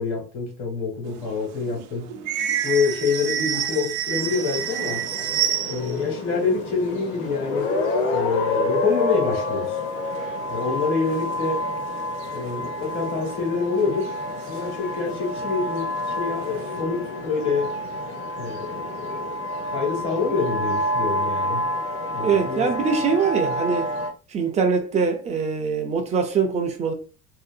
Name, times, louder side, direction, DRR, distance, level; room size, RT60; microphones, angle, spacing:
voice 1, 0.0-2.1 2.6-5.0 5.7-7.7 8.1-9.8 10.5-11.6 12.3-14.1 14.4-15.9 16.2-17.7 18.4-21.6 22.1-22.7, left 5 dB, 70° left, 1.4 m, -26 dB
sound 1, 1.1-6.1 6.3-6.4 6.7-8.1 8.5-8.6 8.9-9.4 10.1-10.2 10.8-11.7 12.2-12.3 13.4-13.6 14.0-15.4 15.8-16.8, right 10 dB, 70° right, 0.5 m, -29 dB
sound 2, 4.2-24.1, left 1 dB, 45° left, 0.7 m, -28 dB
voice 2, 22.2-23.9 24.3-26.9, right 5 dB, 25° right, 0.4 m, -23 dB
2.7 x 2.5 x 2.4 m
cardioid pair, 165°, 30 cm